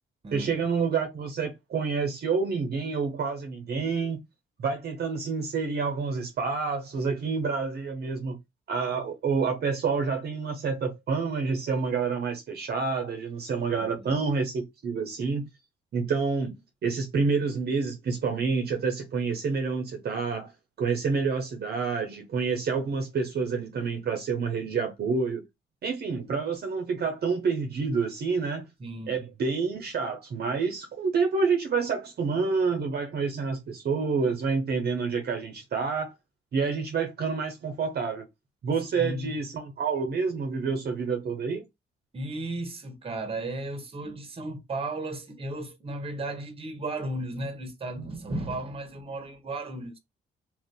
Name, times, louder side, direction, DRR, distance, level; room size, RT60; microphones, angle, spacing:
voice 1, 0.3-4.2 4.6-8.4 8.7-15.5 15.9-20.5 20.8-25.4 25.8-28.6 29.1-36.1 36.5-38.3 38.6-41.6, right 5 dB, 55° right, 0.8 m, -28 dB
voice 2, 13.8-14.2 28.8-29.1 38.9-39.4 42.1-50.0, right 2 dB, 30° right, 1.0 m, -35 dB
2.6 x 2.4 x 3.6 m
cardioid pair, 90°, 20 cm